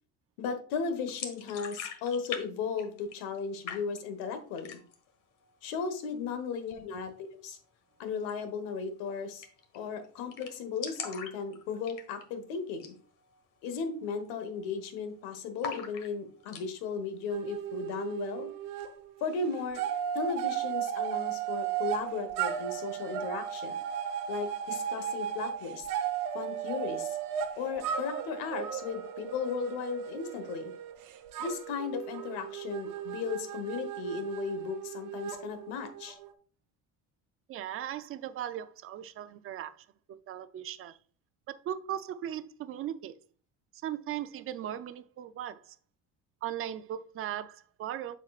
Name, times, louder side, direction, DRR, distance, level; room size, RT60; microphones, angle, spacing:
voice 1, 0.4-4.8 5.6-7.6 8.0-9.5 9.7-12.9 13.6-18.5 19.2-19.8 20.1-23.8 24.3-25.9 26.3-27.2 27.6-30.7 31.4-36.2, left 5 dB, 90° left, 1.4 m, -36 dB
sound 1, 1.1-2.4 2.7-3.4 3.7-4.2 4.6-5.1 5.4-5.5 5.8-6.5 8.2-8.3 8.6-8.7 9.0-9.1 9.4-9.8 10.0-10.1 10.3-12.4 12.7-13.0 13.3-13.4 14.0-14.3 14.5-15.1 15.6-16.7, left 6 dB, 60° left, 1.5 m, -41 dB
sound 2, 17.3-18.9 19.2-36.3, right 9 dB, 65° right, 1.0 m, -36 dB
voice 2, 37.5-41.0 41.5-43.2 43.8-45.8 46.4-48.2, right 11 dB, 40° right, 0.5 m, -38 dB
7.3 x 6.4 x 2.4 m
cardioid pair, 135°, 36 cm